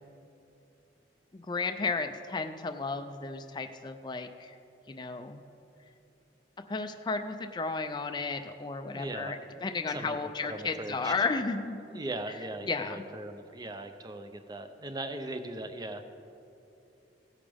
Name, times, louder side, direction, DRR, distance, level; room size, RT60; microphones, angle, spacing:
voice 1, 1.3-4.5 4.9-5.4 6.7-9.4 9.6-12.0 12.7-13.0, left 4 dB, 25° left, 6 dB, 0.4 m, -33 dB
voice 2, 8.9-9.3 9.9-11.1 11.9-16.1, right 2 dB, 20° right, 8 dB, 0.6 m, -39 dB
16.5 x 8.7 x 3.5 m, 2.7 s
head